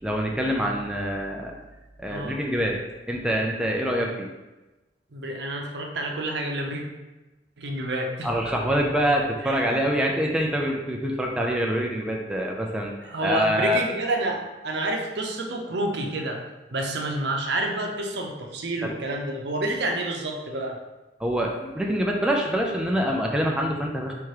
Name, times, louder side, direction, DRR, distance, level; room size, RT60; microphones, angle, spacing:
voice 1, 0.0-1.5 2.0-2.8 3.1-4.3 8.2-12.9 13.2-13.8 18.8-18.9 21.2-24.1, equal, 5° right, -1 dB, 0.4 m, -25 dB
voice 2, 5.1-6.8 7.6-8.5 9.4-9.8 13.0-16.4 16.7-20.8, right 2 dB, 70° right, 1 dB, 0.7 m, -29 dB
3.5 x 3.0 x 4.7 m, 1.1 s
head